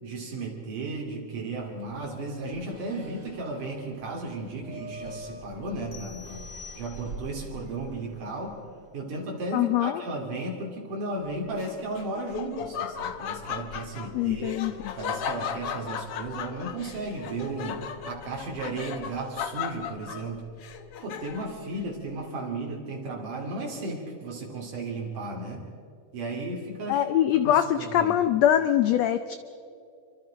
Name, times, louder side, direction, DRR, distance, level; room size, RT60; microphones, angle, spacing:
voice 1, 0.0-6.4 6.8-8.6 8.9-14.6 15.0-20.5 21.0-25.7 26.1-27.0 27.5-28.1, right 2 dB, 75° right, -1 dB, 4.1 m, -34 dB
sound 1, 1.5-9.1, right 3 dB, 40° right, 2.6 m, -45 dB
sound 2, 5.9-7.4, left 6 dB, 40° left, 2.3 m, -46 dB
voice 2, 9.5-10.0 14.1-14.9 26.9-29.4, left 11 dB, 75° left, 10 dB, 1.6 m, -23 dB
Laughter, 11.6-21.6, left 7 dB, 60° left, 1.7 m, -36 dB
27.5 x 24.5 x 5.1 m, 2.5 s
omnidirectional pair, 3.7 m